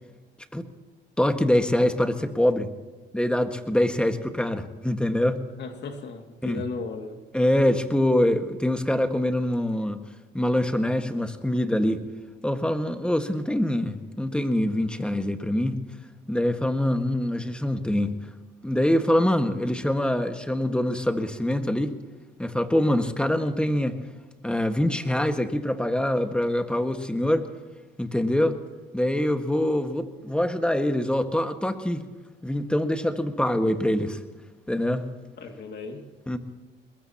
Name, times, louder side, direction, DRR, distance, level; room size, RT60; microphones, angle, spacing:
voice 1, 1.2-2.7 3.1-5.4 6.4-6.6 7.3-10.0 10.3-12.0 12.4-15.8 16.3-18.1 18.6-21.9 22.4-24.0 24.4-27.4 28.0-28.6 28.9-32.0 32.4-34.2 34.7-35.1 36.3-36.4, left 1 dB, 5° left, 7 dB, 1.6 m, -24 dB
voice 2, 5.6-7.2 35.4-36.1, left 4 dB, 60° left, 5 dB, 2.3 m, -36 dB
21.5 x 21.0 x 2.9 m, 1.3 s
cardioid pair, 90°, 20 cm